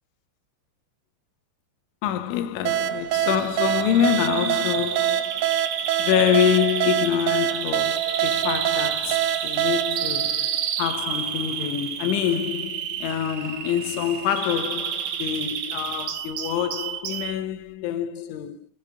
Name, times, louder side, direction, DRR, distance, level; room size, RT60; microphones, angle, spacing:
voice 1, 2.0-5.5 6.0-18.7, left 10 dB, 85° left, 3.5 m, -26 dB
sound 1, 2.7-11.1, right 11 dB, 80° right, 2.3 m, -26 dB
Bird vocalization bird call bird song, 3.3-17.3, right 9 dB, 65° right, 2.8 m, -30 dB
16.0 x 7.8 x 4.9 m
omnidirectional pair, 5.3 m